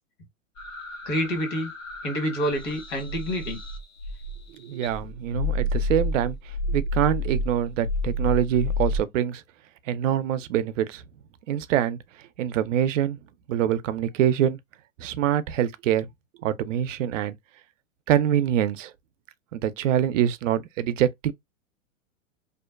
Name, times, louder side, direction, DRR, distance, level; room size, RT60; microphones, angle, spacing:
sound 1, 0.6-4.5 4.8-9.0, left 2 dB, 85° left, 1.0 m, -30 dB
voice 1, 1.0-1.7 2.0-3.6, equal, 65° left, 1.4 m, -27 dB
voice 2, 4.5-6.4 6.7-9.4 9.9-11.0 11.5-12.0 12.4-13.2 13.5-14.6 15.0-16.1 16.4-17.3 18.1-18.9 19.5-21.3, right 10 dB, 70° right, 0.5 m, -24 dB
2.5 x 2.1 x 2.3 m
hypercardioid pair, 110°, 40 cm